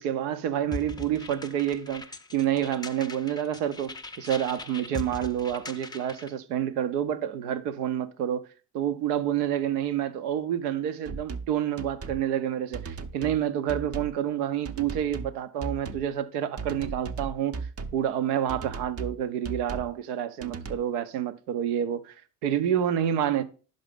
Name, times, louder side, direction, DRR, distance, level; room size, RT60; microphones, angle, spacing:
voice 1, 0.0-8.4 8.7-17.7 17.9-22.1 22.4-23.4, right 10 dB, 80° right, 0.6 m, -28 dB
sound 1, 0.7-6.3, left 3 dB, 10° left, 0.5 m, -41 dB
sound 2, 11.1-11.5 11.8-12.2 12.7-13.4 13.7-14.2 14.7-15.3 15.6-16.1 16.6-18.0 18.5-19.2 19.4-19.9 20.4-20.8, right 4 dB, 30° right, 0.6 m, -37 dB
5.5 x 5.2 x 5.1 m
hypercardioid pair, 45°, 46 cm